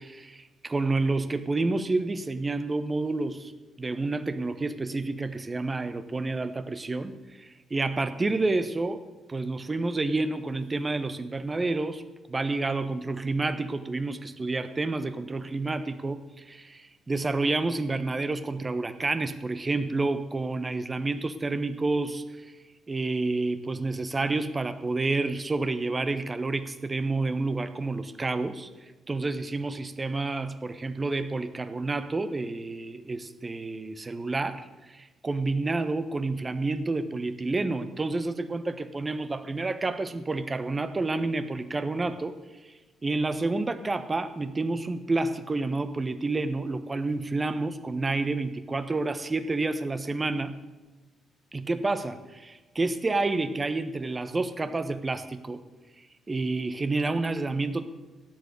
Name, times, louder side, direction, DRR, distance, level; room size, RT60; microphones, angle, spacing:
voice 1, 0.0-3.5 3.8-9.0 9.3-12.0 12.3-22.5 22.9-28.7 29.1-42.3 42.6-42.7 43.0-50.5 51.5-55.6 56.3-57.9, right 3 dB, 25° right, 11 dB, 1.1 m, -29 dB
13.0 x 10.0 x 6.8 m, 1.2 s
figure-of-eight pair, 40°, 0 cm